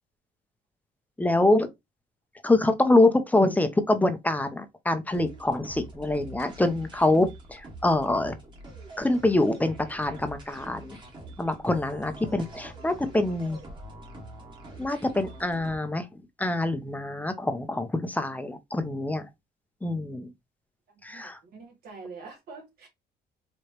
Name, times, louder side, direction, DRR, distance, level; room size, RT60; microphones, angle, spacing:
voice 1, 1.2-1.7 2.4-8.4 9.0-11.0 11.4-13.6 14.8-16.1 16.4-19.3 19.8-20.3 21.0-21.4, left 2 dB, 10° left, 0.7 m, -25 dB
sound 1, 5.1-15.8, right 2 dB, 30° right, 1.7 m, -45 dB
voice 2, 21.1-22.9, right 4 dB, 65° right, 2.3 m, -45 dB
4.9 x 3.1 x 3.0 m
cardioid pair, 110°, 17 cm